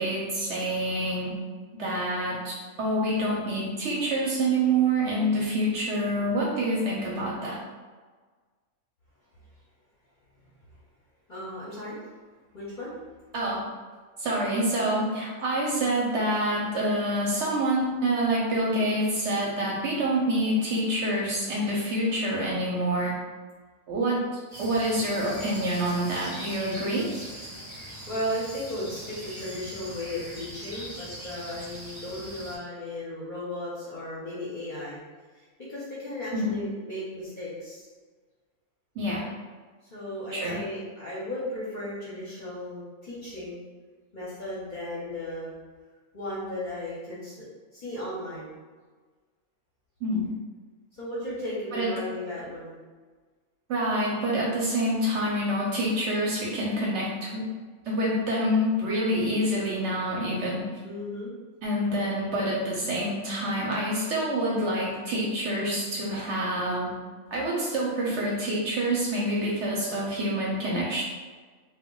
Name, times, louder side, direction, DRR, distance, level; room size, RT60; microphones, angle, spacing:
voice 1, 0.0-1.3 1.8-7.6 13.3-13.7 14.2-23.2 23.9-24.3 24.6-27.1 36.3-36.6 39.0-39.2 40.3-40.6 50.0-50.3 51.7-51.9 53.7-57.4 57.9-60.6 61.6-66.9 67.3-71.0, right 1 dB, 65° right, -4 dB, 0.8 m, -27 dB
voice 2, 11.3-12.0 12.5-13.0 27.9-35.0 35.3-37.9 39.9-43.6 44.1-45.5 46.1-48.6 50.9-52.8 60.8-61.3, left 1 dB, 45° left, -8 dB, 0.7 m, -35 dB
sound 1, 24.5-32.6, equal, 35° right, 0.4 m, -41 dB
2.2 x 2.2 x 3.7 m, 1.4 s
omnidirectional pair, 1.5 m